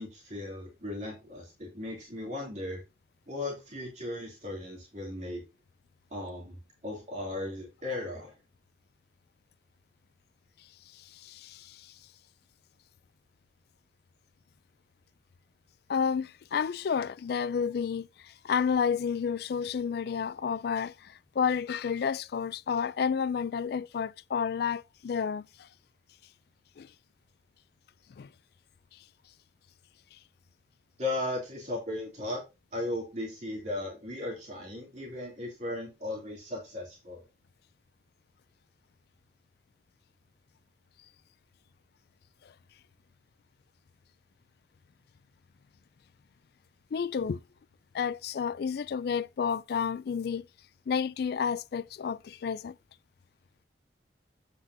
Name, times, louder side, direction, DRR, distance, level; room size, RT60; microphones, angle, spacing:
voice 1, 0.0-2.8 3.3-5.4 6.1-6.6 6.8-8.3 31.0-32.4 32.7-37.2, left 2 dB, 40° right, 2.9 m, -36 dB
voice 2, 10.9-11.9 15.9-25.7 26.8-26.9 28.2-28.3 42.4-42.5 46.9-47.4 47.9-50.5 50.9-52.8, left 6 dB, 60° left, 0.4 m, -31 dB
9.5 x 8.2 x 2.7 m
head